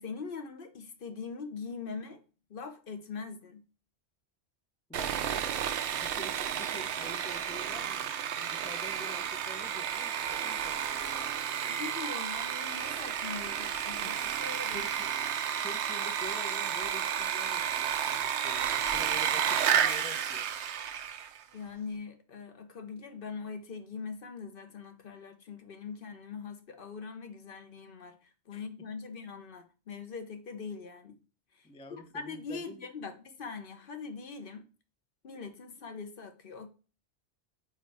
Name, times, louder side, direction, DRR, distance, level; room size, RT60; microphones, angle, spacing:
voice 1, 0.0-2.2 2.5-3.6 11.7-14.8 21.5-28.2 28.5-31.2 31.9-34.7 35.2-36.7, left 5 dB, 55° left, 0.9 m, -42 dB
voice 2, 4.9-5.4 5.8-11.8 14.0-14.1 14.7-15.1 15.6-20.5 28.5-28.6 31.6-32.8, left 2 dB, 10° left, 0.4 m, -48 dB
Sawing, 4.9-21.4, right 9 dB, 75° right, 0.9 m, -32 dB
4.8 x 4.6 x 4.6 m
omnidirectional pair, 1.2 m